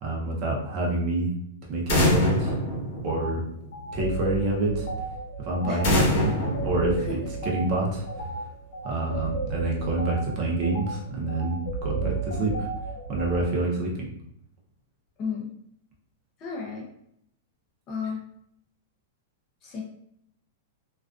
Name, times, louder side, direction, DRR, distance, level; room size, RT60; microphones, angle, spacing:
voice 1, 0.0-1.3 1.7-2.6 3.0-3.4 3.9-4.9 5.4-6.3 6.6-7.2 7.4-8.1 8.8-12.7 13.1-14.1, right 2 dB, 30° right, -2 dB, 0.5 m, -27 dB
sound 1, 1.9-3.7 5.8-7.6, left 1 dB, 45° left, 0.9 m, -25 dB
sound 2, 3.1-3.3 3.7-13.4, right 4 dB, 90° left, 0.6 m, -33 dB
voice 2, 15.2-15.5 16.4-16.9 17.9-18.2 19.6-19.8, left 5 dB, 25° left, -1 dB, 0.4 m, -32 dB
2.4 x 2.3 x 2.3 m, 0.72 s
supercardioid pair, 170°, 0 cm